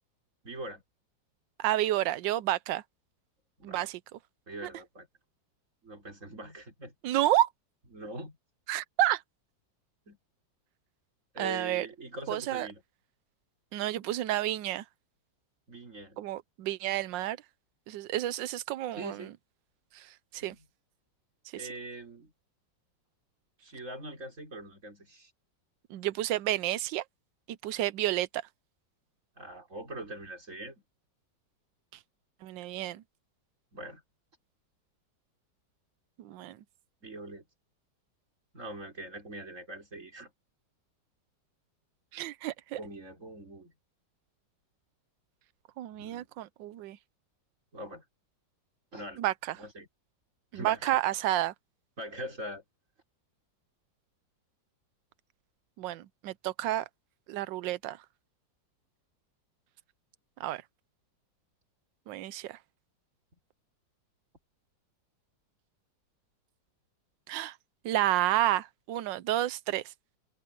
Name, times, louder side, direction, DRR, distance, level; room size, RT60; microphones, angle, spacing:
voice 1, 0.4-0.8 3.6-3.8 4.5-5.1 5.8-6.9 7.9-8.4 10.1-10.2 11.3-12.8 15.7-16.2 19.0-19.3 20.3-20.7 21.5-22.3 23.6-25.3 29.4-30.8 33.7-34.0 37.0-37.5 38.5-40.3 42.8-43.7 46.0-46.3 47.7-48.0 48.9-49.2 49.6-49.9 50.5-51.0 52.0-52.6, right 1 dB, 40° right, 5.4 m, -42 dB
voice 2, 1.6-2.8 3.6-4.0 7.0-7.5 8.7-9.2 11.4-11.9 12.3-12.7 13.7-14.8 16.2-17.4 17.9-19.3 19.9-20.5 21.5-21.6 25.9-27.0 27.6-28.4 32.4-33.0 36.2-36.6 42.1-42.8 45.8-47.0 49.2-49.6 50.5-51.5 55.8-56.8 57.3-58.0 60.4-60.6 62.1-62.6 67.3-67.6 67.8-69.8, right 14 dB, 80° right, 1.4 m, -30 dB
omnidirectional pair, 2.0 m